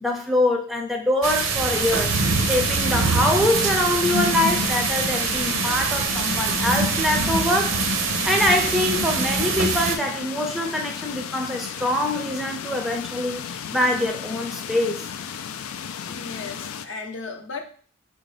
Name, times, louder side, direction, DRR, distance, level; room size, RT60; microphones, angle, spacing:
voice 1, 0.0-2.1 2.4-7.8 8.2-15.0, left 1 dB, ahead, 2 dB, 0.4 m, -24 dB
sound 1, 1.2-10.0, right 4 dB, 80° right, 0.6 m, -24 dB
sound 2, 1.7-16.9, left 8 dB, 90° left, 0.4 m, -34 dB
voice 2, 16.1-17.6, left 4 dB, 65° left, 5 dB, 0.7 m, -35 dB
4.2 x 2.5 x 4.8 m, 0.43 s
head